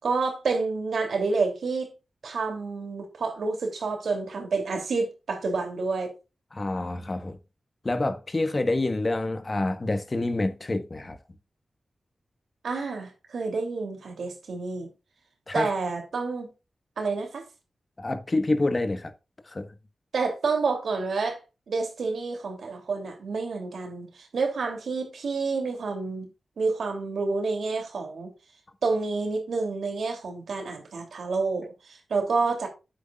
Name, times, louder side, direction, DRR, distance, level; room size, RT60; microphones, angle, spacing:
voice 1, 0.0-1.9 2.2-6.1 12.6-14.9 15.5-16.5 17.0-17.4 20.1-26.3 26.6-28.3 28.8-32.7, right 4 dB, 85° right, 2.9 m, -29 dB
voice 2, 6.5-7.4 7.8-11.2 15.5-15.7 18.0-19.1 19.5-19.7, left 2 dB, 40° left, 1.3 m, -27 dB
9.8 x 8.4 x 2.4 m
cardioid pair, 55°, 0 cm